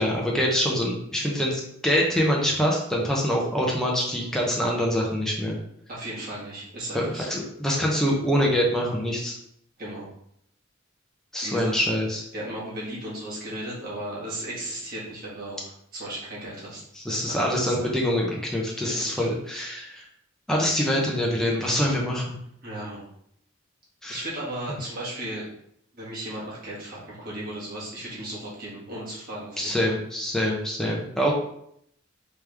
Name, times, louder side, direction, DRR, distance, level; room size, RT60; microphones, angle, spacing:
voice 1, 0.0-5.6 6.9-9.4 11.3-12.2 17.0-20.0 20.5-22.4 24.0-24.2 24.7-24.8 29.6-31.3, equal, 5° left, -3 dB, 0.6 m, -25 dB
voice 2, 5.9-7.3 9.8-10.1 11.4-11.8 12.3-16.8 17.1-17.4 17.6-18.0 18.9-19.3 19.8-19.9 22.6-23.0 24.1-25.5 25.9-29.7, right 1 dB, 45° right, -7 dB, 1.6 m, -35 dB
3.4 x 3.2 x 3.3 m, 0.72 s
head